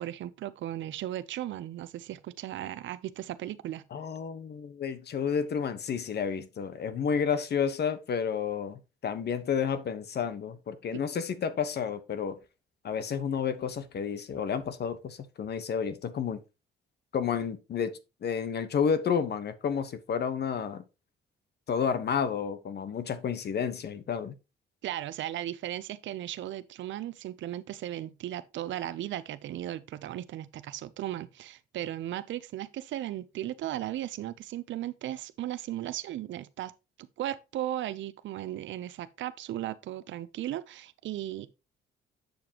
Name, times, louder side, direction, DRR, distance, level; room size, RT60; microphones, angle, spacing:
voice 1, 0.0-3.8 10.9-11.0 24.8-36.7 37.0-41.5, right 13 dB, 70° right, 0.6 m, -36 dB
voice 2, 3.9-12.4 12.8-16.4 17.1-20.8 21.7-24.3, left 7 dB, 55° left, 1.1 m, -31 dB
7.8 x 6.9 x 2.9 m
cardioid pair, 90°, 20 cm